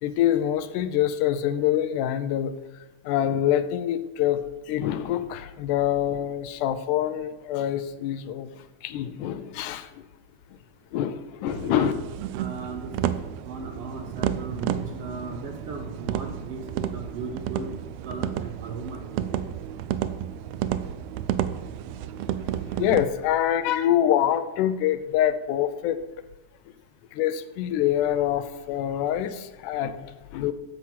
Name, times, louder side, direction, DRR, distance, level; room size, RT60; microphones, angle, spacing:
voice 1, 0.0-10.1 10.9-11.9 22.5-26.0 27.1-30.5, left 11 dB, 85° left, 11 dB, 2.1 m, -25 dB
sound 1, 11.5-23.0, right 11 dB, 85° right, 1.4 m, -31 dB
voice 2, 12.3-13.0 13.4-17.8 18.0-19.5 21.9-22.1 22.3-22.4, right 3 dB, 70° right, 4 dB, 1.5 m, -37 dB
10.5 x 5.9 x 7.4 m, 1.1 s
omnidirectional pair, 3.5 m